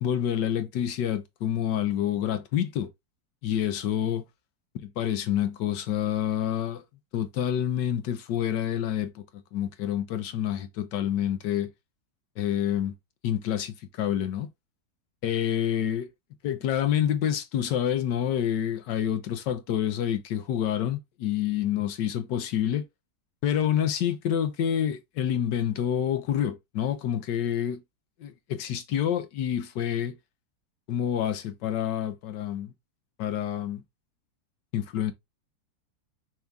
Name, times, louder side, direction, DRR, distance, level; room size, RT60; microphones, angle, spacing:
voice 1, 0.0-2.9 3.4-4.2 4.8-6.8 7.1-9.2 9.5-11.7 12.4-12.9 13.2-14.5 15.2-16.1 16.4-22.8 23.4-27.8 28.2-30.2 30.9-32.7 33.2-33.8 34.7-35.1, left 10 dB, 75° left, 1.5 m, -28 dB
5.9 x 2.6 x 3.4 m
omnidirectional pair, 1.9 m